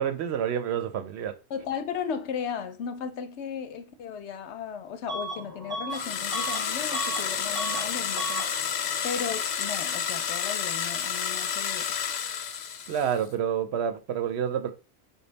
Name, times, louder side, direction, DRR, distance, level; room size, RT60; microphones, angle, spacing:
voice 1, 0.0-1.3 12.9-14.7, right 8 dB, 75° right, 0.8 m, -28 dB
voice 2, 1.5-8.5 9.0-11.8, left 7 dB, 80° left, 0.9 m, -35 dB
Bus / Alarm, 5.1-5.4 5.7-7.3 7.5-7.9 8.1-8.5, right 2 dB, 25° right, 0.6 m, -34 dB
sound 1, 5.3-12.9, equal, 35° left, 1.5 m, -47 dB
Hedge Trimmers Run, 5.9-13.2, left 8 dB, 55° left, 0.5 m, -30 dB
5.1 x 2.3 x 3.9 m
omnidirectional pair, 1.1 m